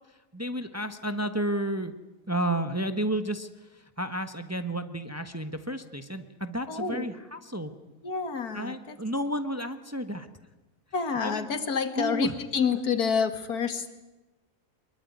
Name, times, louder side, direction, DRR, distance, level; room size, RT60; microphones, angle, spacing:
voice 1, 0.3-1.9 2.3-7.7 8.5-10.3 11.2-11.5 12.0-12.3, right 1 dB, 10° right, 9 dB, 1.2 m, -31 dB
voice 2, 6.7-7.1 8.0-9.0 10.9-13.9, left 6 dB, 80° left, 10 dB, 2.4 m, -28 dB
23.5 x 22.0 x 9.5 m, 1.1 s
omnidirectional pair, 1.6 m